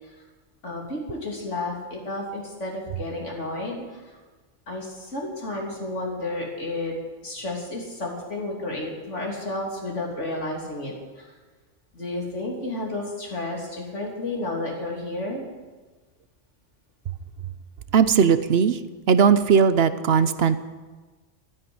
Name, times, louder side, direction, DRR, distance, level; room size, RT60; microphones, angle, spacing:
voice 1, 0.6-4.2 4.7-6.9 7.2-11.3 11.9-15.4, left 2 dB, 80° left, -1 dB, 3.5 m, -32 dB
voice 2, 17.9-18.8 19.1-20.6, right 6 dB, 60° right, 13 dB, 1.0 m, -18 dB
13.5 x 9.5 x 9.6 m, 1.3 s
omnidirectional pair, 1.2 m